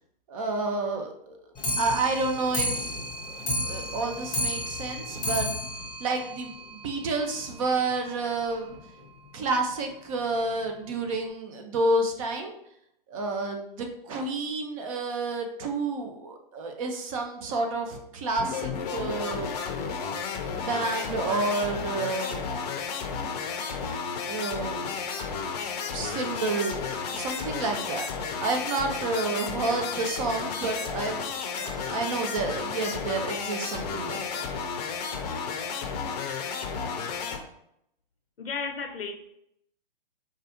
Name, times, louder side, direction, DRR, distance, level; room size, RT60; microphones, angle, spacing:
voice 1, 0.3-1.4 1.8-5.5 6.0-8.8 9.3-12.5 13.1-19.5 20.5-22.4 24.2-25.1 25.9-26.8 27.0-28.1 28.4-34.5, right 3 dB, 35° right, 3 dB, 0.6 m, -30 dB
Clock, 1.5-7.0 7.4-7.5 7.7-7.8 8.2-8.3 8.5-8.6 9.3-9.4 10.1-10.2 10.9-11.0, left 1 dB, 15° left, 0.8 m, -32 dB
sound 1, 18.4-37.4, left 5 dB, 45° left, 0.6 m, -33 dB
voice 2, 38.4-39.1, left 5 dB, 80° left, 4 dB, 0.7 m, -33 dB
4.8 x 2.3 x 2.9 m, 0.75 s
figure-of-eight pair, 125°, 29 cm